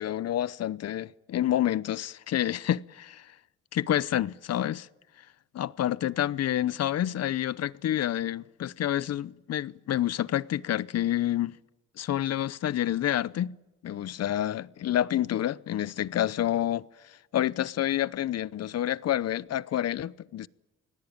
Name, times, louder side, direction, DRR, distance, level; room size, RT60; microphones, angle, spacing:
voice 1, 0.0-3.3 3.7-4.9 5.6-11.6 12.0-13.6 13.8-16.9 17.3-20.5, left 12 dB, 55° left, 0.8 m, -28 dB
26.0 x 19.0 x 8.8 m
cardioid pair, 90°, 30 cm